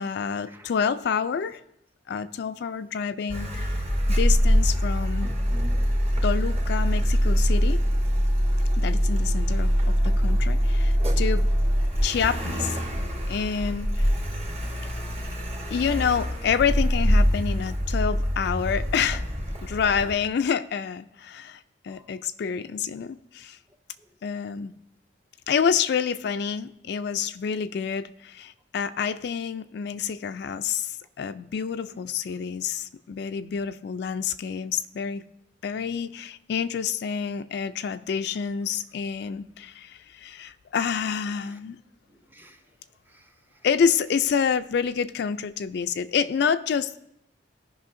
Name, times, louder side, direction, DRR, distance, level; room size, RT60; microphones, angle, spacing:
voice 1, 0.0-1.6 2.1-3.7 4.2-5.3 6.2-7.8 8.8-11.5 12.0-12.8 13.3-14.1 15.7-19.2 19.6-23.6 24.2-24.8 25.5-35.2 35.6-41.8 43.6-47.0, left 6 dB, 60° left, 11 dB, 0.3 m, -28 dB
Car, 3.3-20.2, equal, 35° right, 1.1 m, -24 dB
voice 2, 42.1-42.6 43.1-43.7, right 1 dB, 10° right, 6 dB, 0.6 m, -56 dB
16.0 x 5.5 x 2.6 m, 0.81 s
head